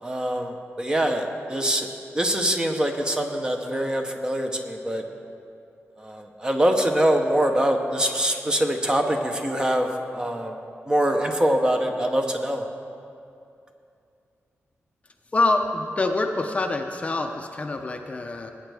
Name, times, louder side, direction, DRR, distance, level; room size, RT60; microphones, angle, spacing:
voice 1, 0.0-1.9 2.1-5.0 6.0-10.6 10.9-12.7, right 1 dB, 15° right, 4 dB, 0.8 m, -24 dB
voice 2, 15.3-18.5, left 2 dB, 30° left, 4 dB, 0.6 m, -25 dB
20.0 x 9.0 x 3.4 m, 2.5 s
wide cardioid pair, 155°, 5 cm